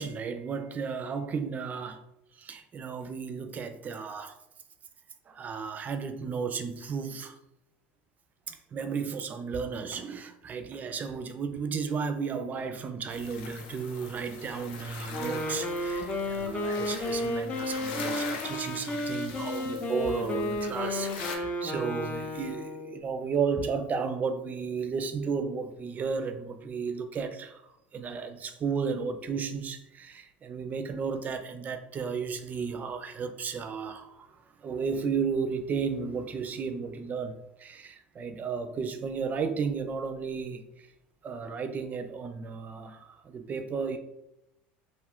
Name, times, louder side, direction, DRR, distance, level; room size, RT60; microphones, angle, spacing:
voice 1, 0.0-2.0 2.4-4.4 5.3-7.4 8.5-27.6 27.9-40.9 41.2-44.0, right 5 dB, 30° right, 8 dB, 0.4 m, -33 dB
sound 1, 13.1-21.4, left 5 dB, 75° left, 0.5 m, -42 dB
Wind instrument woodwind instrument, 15.1-23.0, left 1 dB, 25° left, 0.5 m, -32 dB
2.5 x 2.3 x 3.5 m, 0.82 s
supercardioid pair, 105°, 6 cm